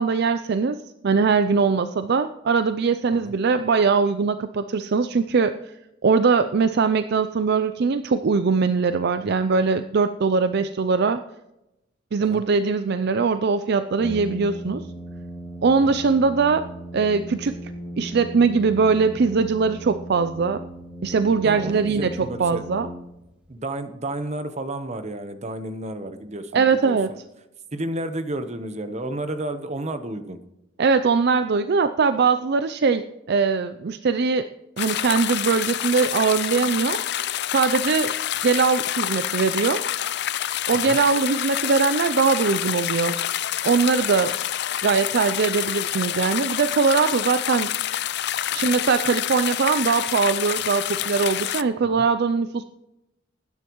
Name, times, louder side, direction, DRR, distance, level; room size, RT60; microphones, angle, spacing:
voice 1, 0.0-5.5 6.0-11.2 12.1-14.8 15.6-16.6 16.9-17.7 18.0-20.6 21.0-22.9 26.5-27.1 30.8-34.5 34.8-37.0 37.5-38.1 38.4-39.8 40.7-43.2 43.6-44.3 44.8-47.7 48.5-52.6, right 5 dB, 55° right, 11 dB, 0.4 m, -21 dB
Brass instrument, 14.0-23.5, right 1 dB, 5° right, 2.2 m, -37 dB
voice 2, 21.4-22.6 23.5-27.2 27.7-30.4 40.8-41.0 51.8-52.1, right 1 dB, 35° right, 9 dB, 0.9 m, -32 dB
sound 1, 34.8-51.6, left 11 dB, 60° left, 0.5 m, -27 dB
20.0 x 9.8 x 3.1 m, 0.91 s
head